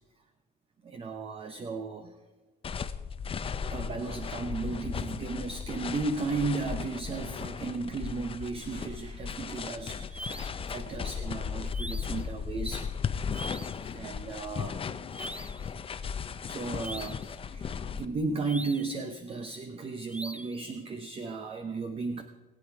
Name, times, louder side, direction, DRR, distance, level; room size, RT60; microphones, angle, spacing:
voice 1, 0.8-2.1 3.6-13.0 13.9-14.8 16.4-22.2, right 3 dB, 35° right, 7 dB, 0.9 m, -35 dB
sound 1, 2.6-18.1, left 6 dB, 35° left, 0.7 m, -36 dB
sound 2, 10.1-10.7 11.7-12.3 13.3-13.9 15.1-15.7 16.8-17.3 18.4-19.0 20.1-20.6, right 1 dB, 5° right, 0.6 m, -42 dB
20.5 x 8.3 x 4.7 m, 1.2 s
cardioid pair, 110°, 17 cm